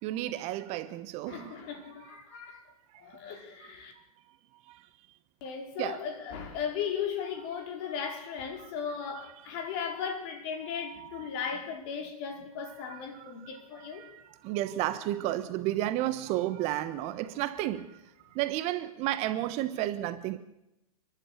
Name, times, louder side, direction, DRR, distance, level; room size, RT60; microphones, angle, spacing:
voice 1, 0.0-1.6 4.7-4.8 5.8-6.0 8.6-8.7 9.1-9.2 10.8-11.3 12.6-13.3 13.9-18.0 18.3-20.4, right 14 dB, 35° right, 1.2 m, -32 dB
voice 2, 1.3-2.6 3.0-3.9 5.4-14.1, left 7 dB, 45° left, 4.7 m, -37 dB
29.5 x 11.5 x 8.1 m
hypercardioid pair, 115°, 19 cm